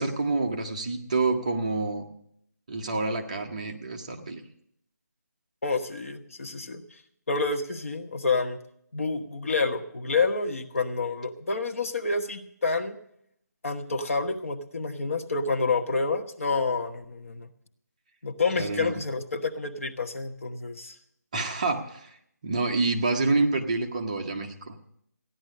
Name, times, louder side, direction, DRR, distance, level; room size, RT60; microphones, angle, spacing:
voice 1, 0.0-2.1 2.7-4.4 18.5-19.0 21.3-22.1 22.4-24.7, right 3 dB, 25° right, 2 dB, 0.8 m, -27 dB
voice 2, 5.6-6.8 7.3-8.6 8.9-13.0 13.6-17.5 18.2-21.0, left 4 dB, 45° left, 6 dB, 1.2 m, -28 dB
15.0 x 10.5 x 6.5 m, 0.71 s
figure-of-eight pair, 175°, 10 cm